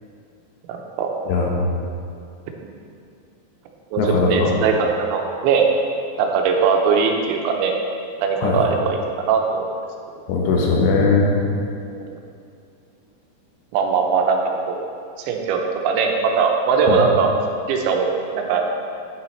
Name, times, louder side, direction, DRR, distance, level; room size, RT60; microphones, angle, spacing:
voice 1, 0.7-1.1 2.6-2.7 3.9-5.7 6.2-7.7 8.2-9.7 11.9-12.2 13.7-14.4 14.7-14.8 15.3-17.3 17.7-18.1 18.3-18.7, right 5 dB, 90° right, 2 dB, 3.2 m, -20 dB
voice 2, 4.0-4.5 8.4-8.6 10.3-11.4 16.9-17.0, left 4 dB, 75° left, -1 dB, 3.2 m, -19 dB
9.5 x 7.4 x 4.4 m, 2.4 s
omnidirectional pair, 5.2 m